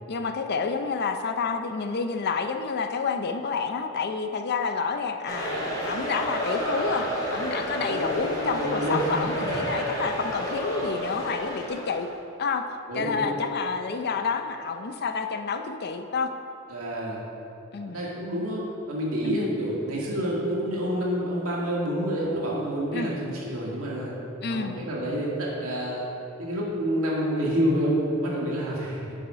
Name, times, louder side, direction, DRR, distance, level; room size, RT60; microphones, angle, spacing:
voice 1, 0.1-5.6 5.9-12.1 12.4-12.6 12.9-16.3 17.7-18.0 19.2-19.5 22.9-23.1 24.4-24.8, left 5 dB, 50° left, 7 dB, 0.5 m, -29 dB
sound 1, 5.3-12.1, equal, 15° left, 1.7 m, -30 dB
voice 2, 7.8-9.1 12.9-13.4 16.7-17.2 17.9-24.1 24.5-26.0 26.4-29.2, equal, 90° right, -4 dB, 2.1 m, -28 dB
8.2 x 5.5 x 5.6 m, 2.8 s
head